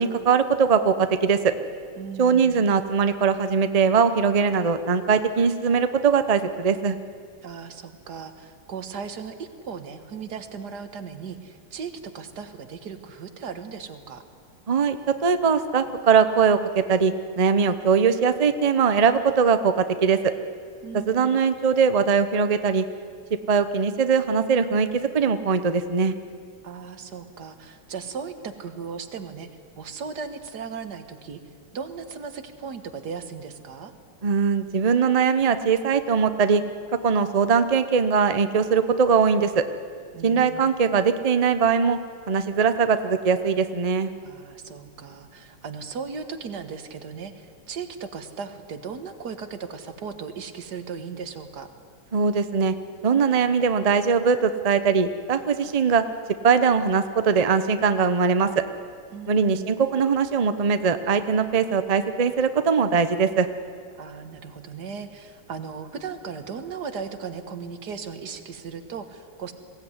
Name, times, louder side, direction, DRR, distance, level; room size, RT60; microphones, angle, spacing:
voice 1, 0.0-1.5 2.2-7.0 14.7-20.3 20.9-22.8 23.5-26.1 34.2-36.6 36.9-39.6 40.2-42.0 42.3-44.1 52.1-52.7 53.0-56.0 56.4-58.6 59.3-63.5, right 6 dB, 80° right, 10 dB, 0.3 m, -21 dB
voice 2, 2.0-2.7 7.4-14.2 20.8-21.4 26.6-29.5 29.8-31.4 31.7-33.9 40.1-40.8 44.2-51.7 59.1-59.7 63.9-69.5, right 6 dB, 55° right, 8 dB, 1.8 m, -37 dB
21.5 x 16.5 x 9.7 m, 2.1 s
omnidirectional pair, 2.2 m